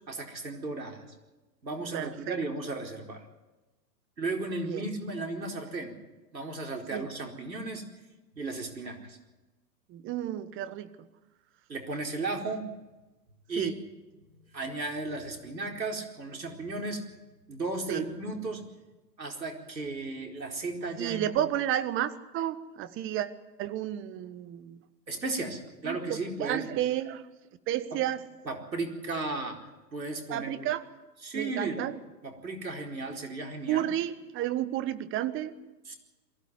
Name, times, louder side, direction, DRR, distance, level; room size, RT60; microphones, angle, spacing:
voice 1, 0.1-1.0 1.6-3.2 4.2-5.9 6.3-7.8 8.4-9.2 11.7-12.7 13.5-13.7 14.5-17.0 17.5-18.6 19.2-21.3 25.1-26.6 27.9-28.0 28.4-29.6 29.9-30.7 31.2-31.9 32.2-33.9 35.8-36.0, right 3 dB, 90° right, 2 dB, 4.6 m, -35 dB
voice 2, 1.9-2.3 4.6-4.8 6.9-7.1 9.9-10.9 13.6-13.7 17.9-18.0 21.0-23.3 23.6-24.8 25.8-27.2 27.7-28.2 30.3-30.8 31.3-31.9 33.7-35.5, right 12 dB, 25° right, 13 dB, 1.4 m, -31 dB
22.5 x 16.0 x 9.6 m, 1.1 s
hypercardioid pair, 120°, 50 cm